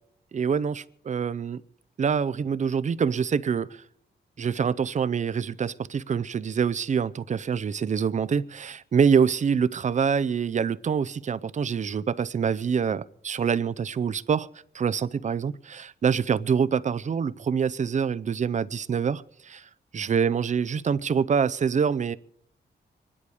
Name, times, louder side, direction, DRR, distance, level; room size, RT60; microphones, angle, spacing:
voice 1, 0.3-1.6 2.0-3.8 4.4-14.5 14.7-22.2, right 6 dB, 40° right, 0.5 m, -25 dB
24.5 x 11.0 x 4.9 m
wide cardioid pair, 115°, 18 cm